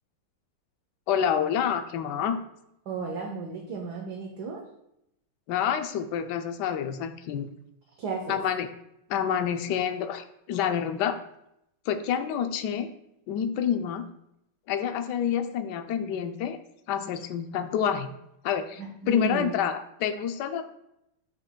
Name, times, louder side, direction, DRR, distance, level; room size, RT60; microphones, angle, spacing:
voice 1, 1.1-2.4 5.5-7.5 8.3-8.7 9.1-11.2 11.9-12.9 13.3-14.1 14.7-16.6 16.9-18.1 18.4-18.8 19.1-20.6, left 8 dB, 80° left, 7 dB, 0.9 m, -28 dB
voice 2, 2.9-4.6 8.0-8.4 18.8-19.5, right 4 dB, 60° right, 1 dB, 1.3 m, -34 dB
9.0 x 5.8 x 2.2 m, 0.82 s
omnidirectional pair, 2.3 m